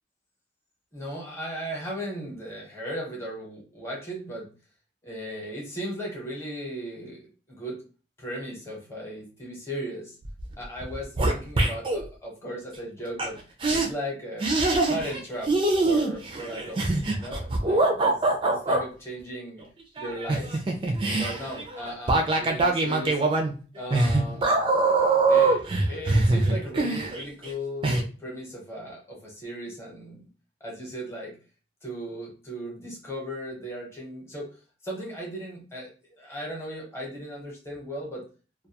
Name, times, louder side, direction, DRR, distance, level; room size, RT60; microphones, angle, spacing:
voice 1, 0.9-4.5 5.0-7.8 8.2-10.2 10.6-13.4 13.7-14.4 14.9-15.6 15.8-16.9 17.2-19.6 20.0-20.6 21.1-23.2 23.7-24.6 25.3-30.3 30.6-31.4 31.8-34.5 34.8-38.2, equal, 15° left, -3 dB, 0.8 m, -37 dB
sound 1, 10.2-10.5 10.8-12.0 13.2-13.3 13.6-13.9 14.4-15.2 15.5-18.8 20.0-27.5 27.8-28.0, right 2 dB, 30° right, 0.3 m, -23 dB
2.3 x 2.3 x 2.7 m, 0.36 s
head